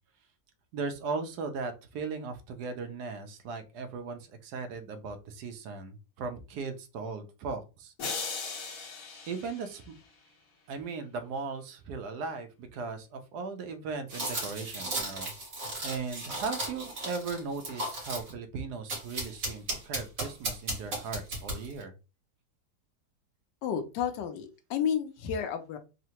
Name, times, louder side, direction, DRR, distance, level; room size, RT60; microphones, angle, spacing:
voice 1, 0.7-7.9 9.3-9.9 10.7-15.3 15.8-21.9, right 4 dB, 75° right, 7 dB, 1.1 m, -37 dB
sound 1, 8.0-10.3, left 5 dB, 60° left, 1.1 m, -38 dB
sound 2, 14.1-18.3 18.9-21.8, right 1 dB, 55° right, 1.7 m, -35 dB
voice 2, 23.6-25.8, left 8 dB, 85° left, 8 dB, 1.3 m, -31 dB
3.7 x 2.1 x 2.8 m, 0.29 s
omnidirectional pair, 1.8 m